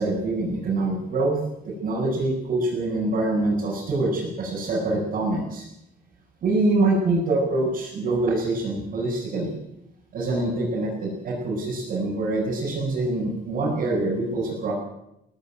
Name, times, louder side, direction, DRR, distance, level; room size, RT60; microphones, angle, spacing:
voice 1, 0.0-1.4 1.6-5.7 6.4-9.6 10.1-14.7, right 2 dB, 55° right, -6 dB, 7.9 m, -25 dB
18.0 x 16.0 x 9.3 m, 0.84 s
cardioid pair, 110°, 17 cm